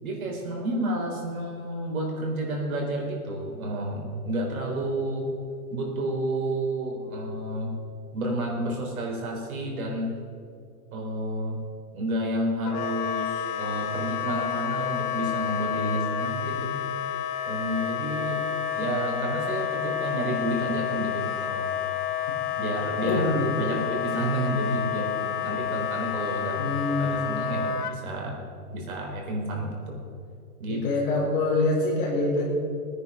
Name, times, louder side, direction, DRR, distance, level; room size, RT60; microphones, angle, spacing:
voice 1, 0.0-5.3 5.7-7.8 8.1-10.2 10.9-11.6 11.9-16.8 17.5-18.5 18.7-21.9 22.6-26.6 27.0-28.4 28.7-30.0 30.6-30.8, right 1 dB, 65° right, 0 dB, 4.2 m, -30 dB
Wind instrument woodwind instrument, 12.7-27.9, left 9 dB, 80° left, 1.1 m, -30 dB
voice 2, 23.0-24.1 25.2-25.6 26.5-27.3 30.7-32.5, left 2 dB, 35° left, -2 dB, 3.9 m, -26 dB
19.0 x 9.7 x 5.6 m, 2.4 s
hypercardioid pair, 175°, 45 cm